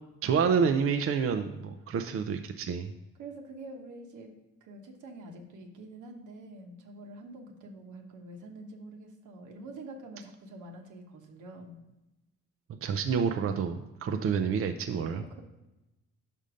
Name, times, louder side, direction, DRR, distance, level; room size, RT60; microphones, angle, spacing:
voice 1, 0.2-2.9 12.7-15.3, right 6 dB, 50° right, 7 dB, 0.5 m, -28 dB
voice 2, 3.2-4.3 4.6-11.8 15.0-15.4, right 2 dB, 80° right, 3 dB, 1.1 m, -46 dB
5.4 x 5.2 x 4.9 m, 0.98 s
cardioid pair, 90°, 30 cm